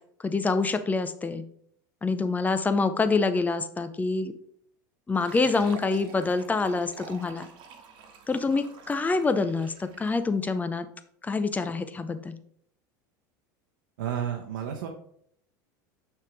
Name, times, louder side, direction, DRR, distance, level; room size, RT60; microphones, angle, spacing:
voice 1, 0.2-1.4 2.0-4.3 5.1-7.5 8.3-10.9 11.2-12.4, left 3 dB, 15° left, 10 dB, 0.6 m, -26 dB
Fill (with liquid), 5.1-10.2, right 5 dB, 50° right, 1.3 m, -48 dB
voice 2, 14.0-14.9, right 9 dB, 85° right, 1 dB, 0.8 m, -31 dB
6.3 x 3.6 x 4.8 m, 0.65 s
supercardioid pair, 100°, 10 cm